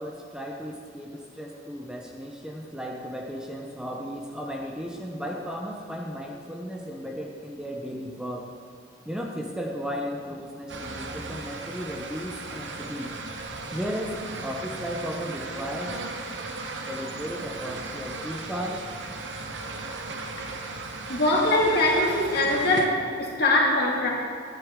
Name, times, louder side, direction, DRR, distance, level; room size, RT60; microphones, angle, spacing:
voice 1, 0.0-8.5 9.1-13.1 13.7-16.0 16.8-18.8, equal, 5° right, 0 dB, 0.7 m, -35 dB
sound 1, 10.7-22.9, right 3 dB, 65° right, 0.9 m, -36 dB
voice 2, 21.1-24.1, left 1 dB, 55° left, -2 dB, 2.1 m, -22 dB
12.5 x 10.5 x 3.7 m, 2.4 s
head